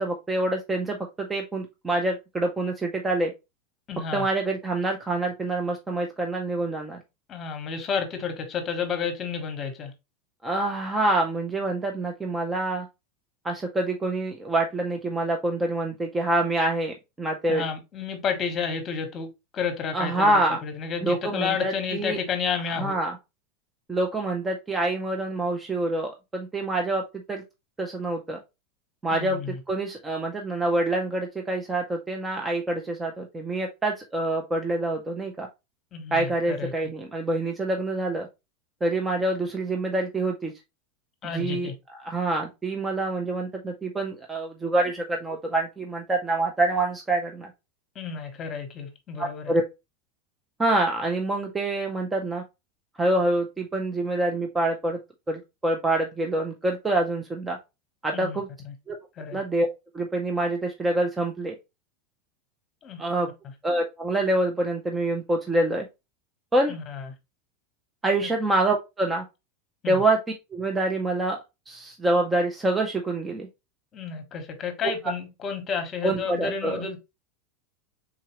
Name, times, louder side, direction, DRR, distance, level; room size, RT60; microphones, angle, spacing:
voice 1, 0.0-3.3 4.1-7.0 10.4-12.9 13.4-17.6 19.9-20.6 21.0-22.2 22.7-23.2 23.9-27.4 27.8-28.4 29.0-29.4 29.7-35.5 36.1-38.3 38.8-40.5 41.3-41.7 42.0-47.5 49.2-49.6 50.6-52.4 53.0-55.0 55.3-57.6 58.0-58.5 58.9-59.0 59.3-59.7 59.9-61.6 63.0-63.3 63.6-65.9 66.5-66.7 68.0-69.2 69.9-70.2 70.5-71.4 71.7-73.5 76.0-76.9, right 2 dB, 10° right, 0.5 m, -26 dB
voice 2, 3.9-4.2 7.3-9.9 17.5-22.9 29.1-29.6 35.9-36.7 41.2-41.7 47.9-49.6 58.1-58.4 58.6-58.7 59.2-59.4 62.8-63.0 66.7-67.1 68.2-68.3 69.8-70.0 73.9-77.0, left 6 dB, 25° left, 1.1 m, -31 dB
4.4 x 3.8 x 3.0 m
supercardioid pair, 165°, 0 cm